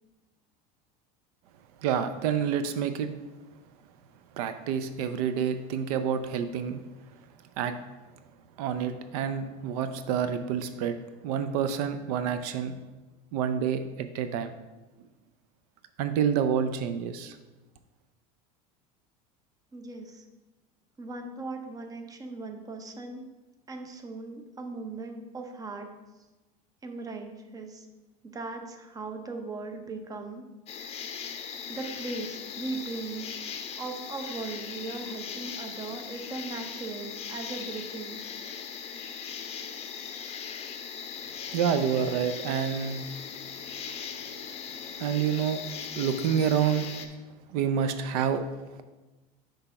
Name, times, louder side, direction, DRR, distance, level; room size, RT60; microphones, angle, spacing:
voice 1, 1.8-3.1 4.4-6.8 7.6-7.7 8.6-11.0 11.2-12.7 13.3-14.5 16.0-17.4 41.5-43.1 45.0-45.6 46.0-46.9 47.5-48.5, right 8 dB, 75° right, 9 dB, 0.5 m, -28 dB
voice 2, 19.7-20.2 21.0-23.2 23.7-25.9 26.8-27.9 28.2-30.4 31.7-33.3 33.8-38.2, right 3 dB, 20° right, 5 dB, 0.7 m, -38 dB
sound 1, 30.7-47.1, left 7 dB, 30° left, 0.6 m, -39 dB
5.9 x 3.4 x 5.6 m, 1.1 s
supercardioid pair, 120°, 19 cm